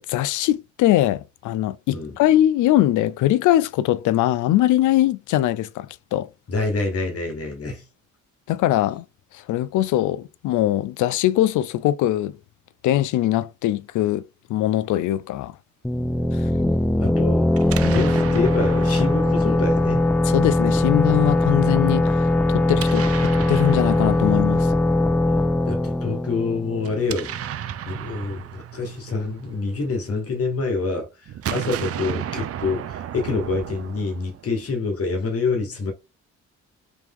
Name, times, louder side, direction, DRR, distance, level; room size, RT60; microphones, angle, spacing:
voice 1, 0.0-6.3 8.5-9.0 9.3-12.4 12.8-14.2 14.5-15.5 16.4-16.5 17.8-18.0 20.2-24.7, left 13 dB, 80° left, 0.4 m, -21 dB
voice 2, 6.5-7.8 17.0-17.5 17.9-20.1 25.7-27.3 27.9-35.9, left 3 dB, 50° left, 1.4 m, -26 dB
sound 1, 15.8-27.3, left 1 dB, 5° left, 0.4 m, -20 dB
Explosion, 17.5-20.6 22.6-24.9 26.8-30.2 31.3-34.6, right 10 dB, 50° right, 0.5 m, -34 dB
3.4 x 3.2 x 3.6 m
cardioid pair, 90°, 30 cm